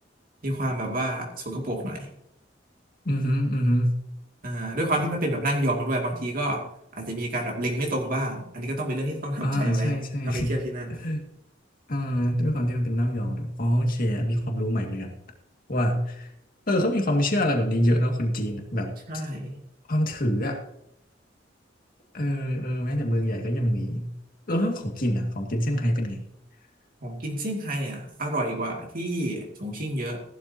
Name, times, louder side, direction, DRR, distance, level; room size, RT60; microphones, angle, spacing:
voice 1, 0.4-2.1 4.4-6.6 7.0-10.0 10.2-11.0 19.1-19.6 27.0-30.2, right 1 dB, 50° right, 0 dB, 2.5 m, -29 dB
voice 2, 3.1-3.9 9.4-10.6 11.0-11.2 11.9-15.1 15.7-16.3 16.7-18.9 19.9-20.6 22.1-24.1 24.5-26.2, equal, 50° left, 2 dB, 2.1 m, -25 dB
15.5 x 12.0 x 2.9 m, 0.78 s
head